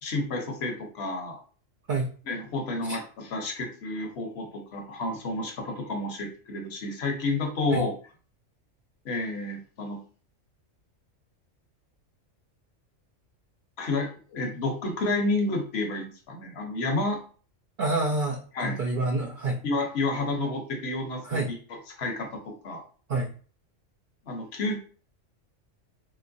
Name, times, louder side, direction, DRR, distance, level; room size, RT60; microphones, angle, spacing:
voice 1, 0.0-1.4 2.3-7.9 9.0-10.0 13.8-17.2 18.5-18.8 19.6-21.6 21.9-22.8 24.3-24.8, left 2 dB, 60° left, 3 dB, 0.9 m, -30 dB
voice 2, 17.8-18.4 18.8-19.6 21.2-21.5 23.1-23.3, right 2 dB, 55° right, -3 dB, 0.6 m, -27 dB
3.0 x 3.0 x 2.5 m, 0.40 s
omnidirectional pair, 1.3 m